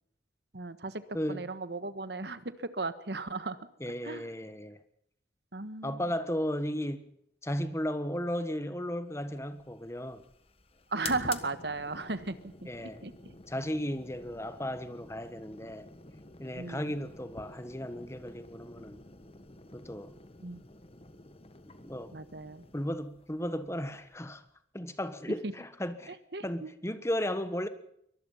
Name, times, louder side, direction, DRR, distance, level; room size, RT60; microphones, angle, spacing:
voice 1, 0.5-1.0 1.3-3.6 4.0-4.3 5.5-6.0 10.9-12.5 12.8-13.4 16.5-16.9 20.4-20.6 22.1-22.6 26.3-26.7, right 3 dB, 65° right, 1.4 m, -36 dB
voice 2, 1.1-1.5 3.8-4.8 5.8-7.1 7.4-10.2 12.7-13.0 13.5-15.9 16.4-19.0 19.7-20.2 21.8-22.2 22.7-24.4 24.7-26.2 26.4-27.7, equal, 15° left, 1.4 m, -35 dB
sound 1, 9.2-24.5, left 4 dB, 30° left, 1.4 m, -49 dB
24.0 x 19.5 x 5.7 m
head